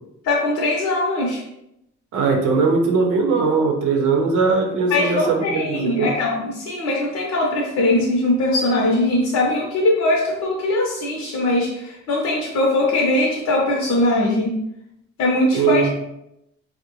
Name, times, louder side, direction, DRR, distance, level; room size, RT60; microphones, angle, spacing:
voice 1, 0.2-1.4 4.9-14.5 15.2-15.9, left 2 dB, 60° left, -2 dB, 0.7 m, -21 dB
voice 2, 2.1-6.1 15.5-15.9, right 4 dB, 80° right, 3 dB, 0.7 m, -19 dB
3.8 x 2.1 x 2.9 m, 0.82 s
cardioid pair, 90°, 30 cm